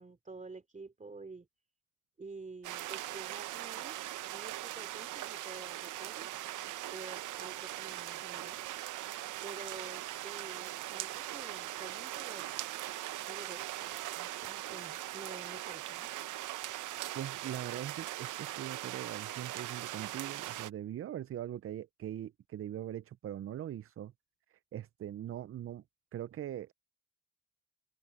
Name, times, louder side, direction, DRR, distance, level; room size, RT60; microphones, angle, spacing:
voice 1, 0.0-1.5 2.2-4.0 4.3-8.6 9.4-12.5 13.2-16.1, right 3 dB, 25° right, 3.3 m, -49 dB
sound 1, 2.6-20.7, right 15 dB, 80° right, 0.9 m, -40 dB
voice 2, 17.1-24.1 24.5-25.8 26.1-26.7, right 11 dB, 45° right, 0.6 m, -41 dB
cardioid pair, 90°, 30 cm